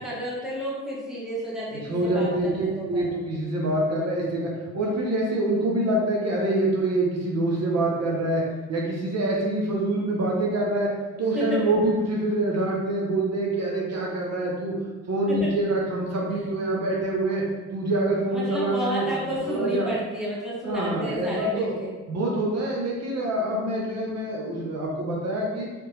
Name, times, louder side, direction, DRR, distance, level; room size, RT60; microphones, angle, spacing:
voice 1, 0.0-3.2 11.3-11.7 15.3-15.5 18.3-21.9, equal, ahead, -7 dB, 1.2 m, -31 dB
voice 2, 1.7-8.4 8.7-10.9 11.2-14.8 15.1-17.4 17.7-19.1 19.5-19.9 20.6-21.7 22.1-25.7, right 1 dB, 55° right, -3 dB, 0.8 m, -25 dB
3.4 x 2.9 x 3.1 m, 1.3 s
cardioid pair, 90°, 30 cm